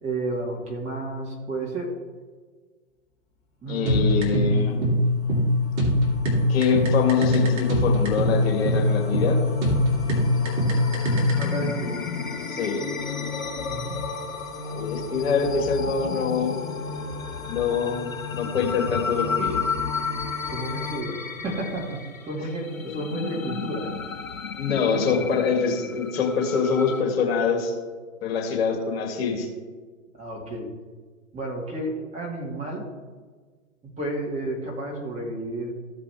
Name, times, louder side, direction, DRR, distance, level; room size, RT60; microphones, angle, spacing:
voice 1, 0.0-1.9 3.6-5.0 11.4-12.0 13.7-13.9 15.3-15.6 20.5-23.9 30.1-30.7 31.3-32.9 33.8-35.7, right 2 dB, 15° right, -2 dB, 2.0 m, -32 dB
voice 2, 3.7-4.8 6.5-9.4 12.5-12.8 14.6-16.5 17.4-19.7 22.9-23.0 24.6-27.7 28.2-29.5, left 5 dB, 50° left, 1 dB, 2.2 m, -25 dB
sound 1, 3.9-11.4, left 1 dB, 40° right, 2.8 m, -21 dB
sound 2, 4.8-21.0, left 4 dB, 10° left, 1.7 m, -37 dB
sound 3, 9.7-27.0, left 5 dB, 85° left, 1.2 m, -33 dB
15.0 x 5.1 x 3.5 m, 1.4 s
figure-of-eight pair, 115°, 39 cm